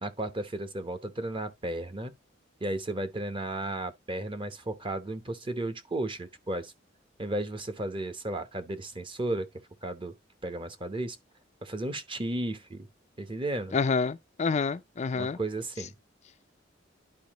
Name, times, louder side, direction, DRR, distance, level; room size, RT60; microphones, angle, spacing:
voice 1, 0.0-2.1 2.6-6.7 7.2-9.5 9.8-10.1 10.4-11.2 11.6-12.9 13.2-13.8 15.1-16.0, right 1 dB, 25° right, 0.9 m, -34 dB
voice 2, 13.7-15.4, left 4 dB, 35° left, 0.4 m, -28 dB
10.5 x 4.7 x 2.9 m
head